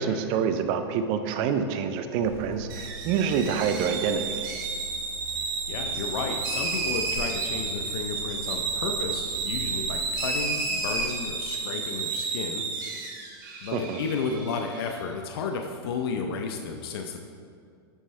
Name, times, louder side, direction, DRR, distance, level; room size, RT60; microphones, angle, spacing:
voice 1, 0.0-4.4 13.7-14.0, right 7 dB, 40° right, 9 dB, 0.5 m, -27 dB
sound 1, 2.2-11.5, right 1 dB, 85° right, 1.5 m, -44 dB
sound 2, 2.7-14.9, right 4 dB, 55° right, 1.1 m, -31 dB
voice 2, 5.7-13.1 13.6-17.3, left 5 dB, 70° left, 3 dB, 0.6 m, -33 dB
9.8 x 4.6 x 3.2 m, 2.3 s
supercardioid pair, 145°, 13 cm